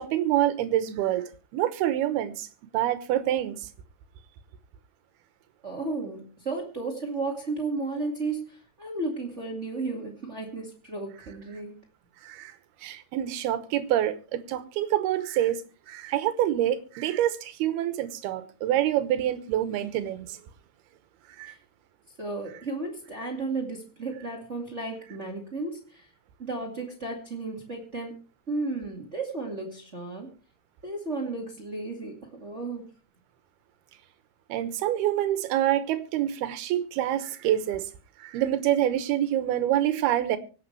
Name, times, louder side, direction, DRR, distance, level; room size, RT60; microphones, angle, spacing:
voice 1, 0.0-2.5 2.7-3.7 12.2-12.5 12.8-15.6 15.9-20.4 21.4-21.5 34.5-37.9 38.2-40.4, right 12 dB, 75° right, 3.0 m, -26 dB
voice 2, 5.6-11.8 21.5-21.6 22.2-26.1 26.4-28.2 28.5-30.3 30.8-32.8, right 3 dB, 25° right, 1.7 m, -34 dB
24.5 x 8.7 x 3.3 m
omnidirectional pair, 4.6 m